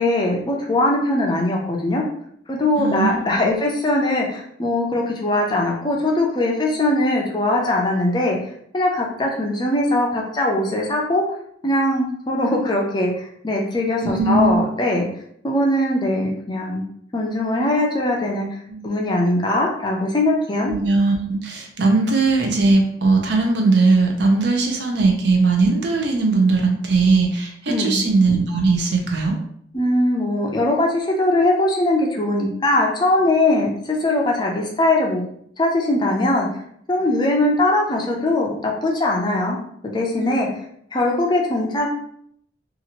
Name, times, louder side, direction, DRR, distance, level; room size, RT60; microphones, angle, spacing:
voice 1, 0.0-2.0 2.5-8.4 8.7-11.2 11.6-15.1 15.4-16.9 17.1-18.5 18.8-20.7 27.7-28.0 29.7-35.2 35.6-36.5 36.9-39.6 39.9-40.5 40.9-41.9, left 1 dB, 25° left, -1 dB, 0.4 m, -20 dB
voice 2, 2.8-3.5 14.0-14.6 18.7-18.8 20.6-29.3 40.2-40.5, right 3 dB, 60° right, 2 dB, 0.6 m, -19 dB
2.8 x 2.4 x 2.9 m, 0.68 s
head